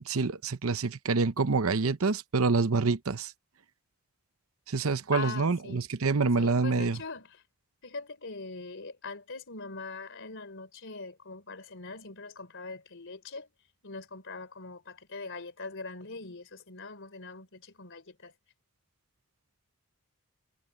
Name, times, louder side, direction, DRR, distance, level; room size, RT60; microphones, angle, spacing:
voice 1, 0.1-3.3 4.7-7.0, right 4 dB, 65° right, 0.8 m, -27 dB
voice 2, 5.1-5.8 6.4-7.4 7.8-13.5 13.8-18.3, left 4 dB, 55° left, 3.7 m, -42 dB
head